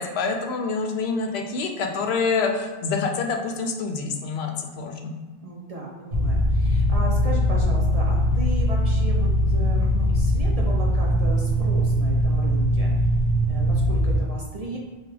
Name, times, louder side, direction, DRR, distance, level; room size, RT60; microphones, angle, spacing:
voice 1, 0.0-5.1, left 4 dB, 75° left, 3 dB, 0.8 m, -26 dB
voice 2, 5.4-12.9 13.5-14.8, right 2 dB, 50° right, -3 dB, 0.5 m, -35 dB
sound 1, 6.1-14.2, equal, 65° right, 1.3 m, -21 dB
5.4 x 2.2 x 3.3 m, 1.2 s
omnidirectional pair, 1.1 m